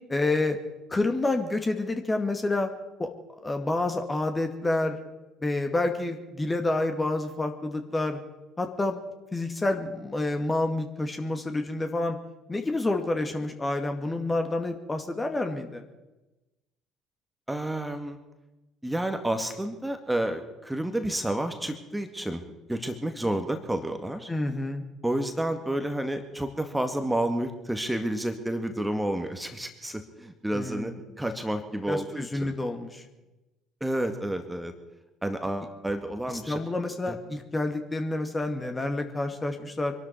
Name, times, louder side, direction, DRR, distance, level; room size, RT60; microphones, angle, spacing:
voice 1, 0.1-0.6 0.9-2.7 3.0-3.1 3.4-5.0 5.4-8.2 8.6-9.0 9.3-12.2 12.5-15.8 24.3-24.8 30.5-30.9 31.9-33.0 36.5-39.9, left 2 dB, 20° left, 5 dB, 2.1 m, -28 dB
voice 2, 17.5-18.2 18.8-22.4 22.7-24.3 25.0-32.5 33.8-34.7 35.2-36.6 37.1-37.2, right 1 dB, 5° right, 6 dB, 2.0 m, -30 dB
25.5 x 12.5 x 4.6 m, 1.0 s
figure-of-eight pair, 55°, 0 cm